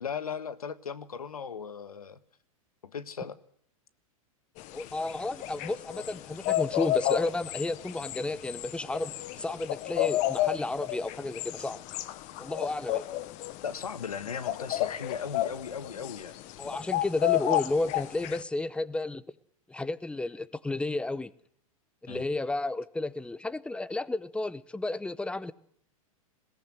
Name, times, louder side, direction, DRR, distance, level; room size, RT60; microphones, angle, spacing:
voice 1, 0.0-2.2 2.8-3.4 13.6-16.4 22.1-22.2, left 6 dB, 85° left, 1.4 m, -37 dB
sound 1, 4.6-18.4, left 14 dB, 40° left, 1.2 m, -32 dB
voice 2, 4.7-11.8 12.4-13.1 16.6-19.2 19.7-21.3 22.0-25.5, left 2 dB, 5° left, 0.8 m, -32 dB
21.0 x 17.5 x 8.0 m
hypercardioid pair, 105°, 18 cm